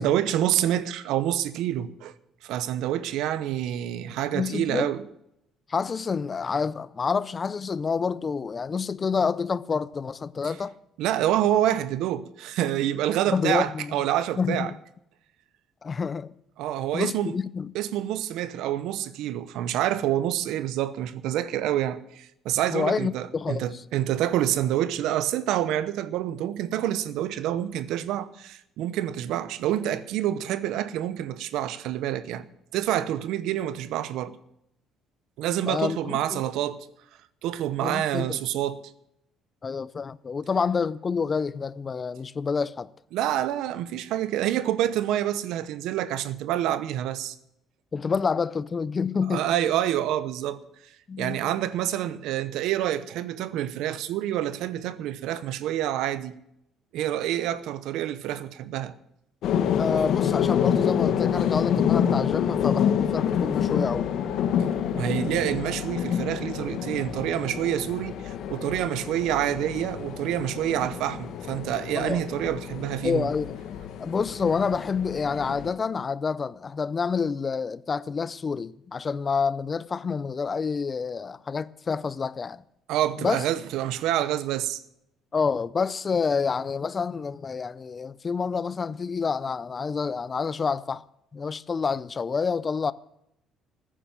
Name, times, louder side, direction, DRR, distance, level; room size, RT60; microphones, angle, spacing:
voice 1, 0.0-2.1 2.4-5.0 11.0-14.7 16.6-17.4 17.7-32.5 32.7-34.4 35.4-36.8 37.4-38.8 43.1-47.3 49.3-50.6 51.2-56.3 56.9-58.9 64.9-73.3 82.9-84.8, right 12 dB, 80° right, 0.9 m, -27 dB
voice 2, 4.3-4.9 5.7-10.8 13.3-14.0 14.4-14.8 15.8-16.3 16.9-17.7 22.7-23.7 35.6-36.4 37.8-38.4 39.6-42.9 47.9-49.4 51.1-51.5 59.8-64.1 71.9-72.2 73.0-73.5 74.0-82.6 83.2-83.4 85.3-91.0 91.3-92.9, left 5 dB, 30° left, 0.5 m, -28 dB
sound 1, 59.4-75.7, left 8 dB, 65° left, 1.4 m, -27 dB
14.5 x 10.0 x 7.5 m
cardioid pair, 120°, 0 cm